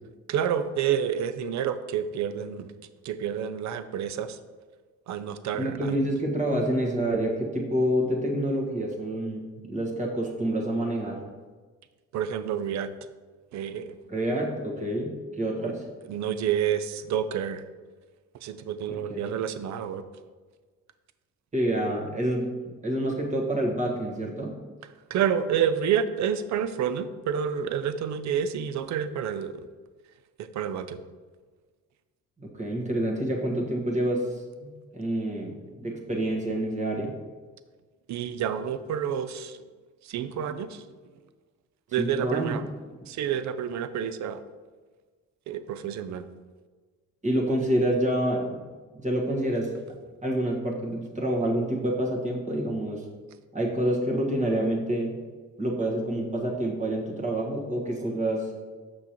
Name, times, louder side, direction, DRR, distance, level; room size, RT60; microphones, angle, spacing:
voice 1, 0.3-2.7 3.0-4.4 5.1-6.0 12.1-12.9 13.5-14.0 16.1-17.6 18.4-20.0 25.1-29.7 30.4-31.0 38.1-39.6 40.0-40.8 41.9-42.6 43.1-44.4 45.5-46.3, right 8 dB, 65° right, 12 dB, 0.5 m, -29 dB
voice 2, 5.5-11.2 14.1-15.8 18.9-19.3 21.5-22.5 22.8-24.5 32.4-34.3 34.6-37.1 42.0-42.5 47.2-48.5 49.0-49.7 50.2-53.0 53.5-55.2 55.6-58.5, right 1 dB, 25° right, -1 dB, 1.5 m, -27 dB
6.7 x 5.9 x 3.0 m, 1.4 s
cardioid pair, 90°, 30 cm